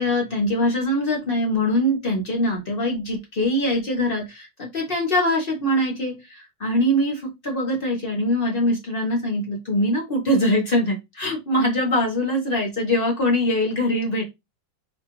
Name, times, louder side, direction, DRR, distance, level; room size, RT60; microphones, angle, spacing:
voice 1, 0.0-14.2, left 1 dB, 45° left, 0 dB, 0.7 m, -23 dB
4.3 x 2.4 x 2.9 m, 0.21 s
omnidirectional pair, 2.1 m